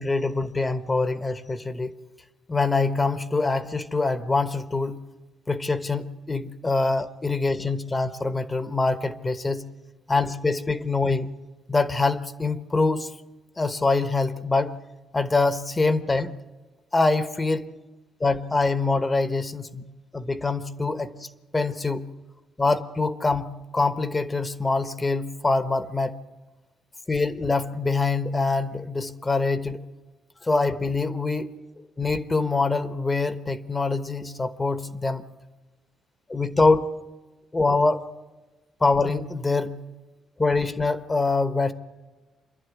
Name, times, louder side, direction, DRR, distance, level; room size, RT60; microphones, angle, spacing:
voice 1, 0.0-2.0 2.5-5.0 5.5-9.7 10.1-11.3 11.7-13.1 13.6-14.8 15.1-16.4 16.9-17.7 18.2-19.8 20.1-21.3 21.5-22.1 22.6-26.2 27.1-29.8 30.4-31.5 32.0-35.2 36.3-36.9 37.5-38.0 38.8-39.8 40.4-41.7, left 3 dB, 20° left, 13 dB, 1.1 m, -24 dB
26.0 x 11.0 x 9.7 m, 1.2 s
cardioid pair, 90°, 0 cm